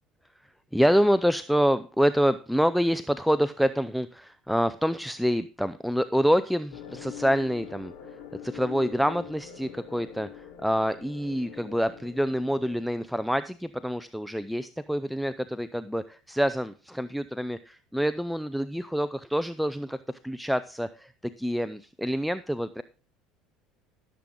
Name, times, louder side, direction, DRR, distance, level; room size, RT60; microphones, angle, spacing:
voice 1, 0.7-7.9 8.4-22.8, equal, ahead, 13 dB, 0.5 m, -27 dB
sound 1, 6.7-12.8, left 9 dB, 75° left, 4.4 m, -44 dB
14.0 x 7.6 x 3.8 m, 0.37 s
supercardioid pair, 105°, 0 cm